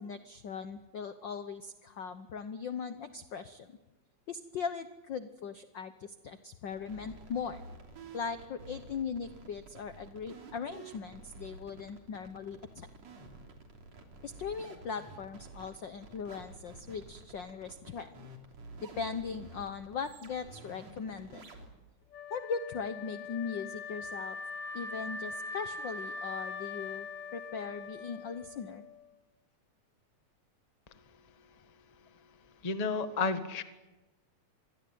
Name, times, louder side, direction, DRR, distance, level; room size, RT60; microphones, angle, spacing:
voice 1, 0.0-3.7 4.3-7.6 8.1-12.9 14.2-18.3 18.8-21.4 22.3-24.4 24.7-28.8, left 6 dB, 85° left, 10 dB, 1.0 m, -39 dB
sound 1, 6.7-21.7, right 3 dB, 60° right, 4.4 m, -51 dB
Wind instrument woodwind instrument, 22.1-29.1, left 4 dB, 65° left, 4.5 m, -42 dB
voice 2, 32.6-33.6, left 4 dB, 40° left, 9 dB, 0.5 m, -31 dB
27.0 x 22.0 x 9.4 m, 1.1 s
omnidirectional pair, 3.5 m